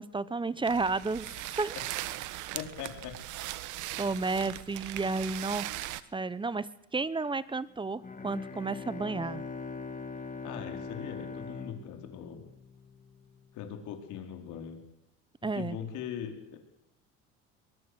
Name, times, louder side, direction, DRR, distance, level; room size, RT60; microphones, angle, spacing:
voice 1, 0.0-1.7 4.0-5.8 6.1-9.4 15.4-15.8, right 3 dB, 15° right, 18 dB, 1.1 m, -32 dB
sound 1, 0.6-6.0, right 16 dB, 70° right, 1.4 m, -39 dB
voice 2, 2.5-3.2 10.4-12.4 13.5-14.8 15.5-16.6, left 9 dB, 65° left, 5 dB, 4.8 m, -40 dB
Bowed string instrument, 8.0-13.0, left 4 dB, 25° left, 3.4 m, -41 dB
23.0 x 20.5 x 8.3 m, 0.87 s
supercardioid pair, 95°, 32 cm